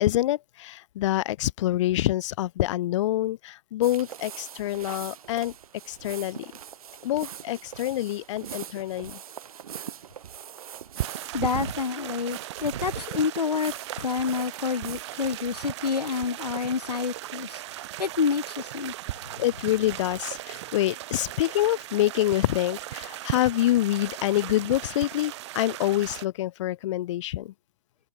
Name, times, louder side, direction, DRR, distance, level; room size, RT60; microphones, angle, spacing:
voice 1, 0.0-5.5 5.9-6.5 7.0-9.2 19.4-27.5, left 14 dB, 50° left, 1.1 m, -26 dB
sound 1, 3.8-17.5, right 9 dB, 65° right, 3.7 m, -41 dB
sound 2, 11.0-26.2, right 15 dB, 45° right, 0.7 m, -38 dB
voice 2, 11.3-17.6 18.0-18.9 19.3-19.4, left 5 dB, 85° left, 2.1 m, -28 dB
hypercardioid pair, 125°, 20 cm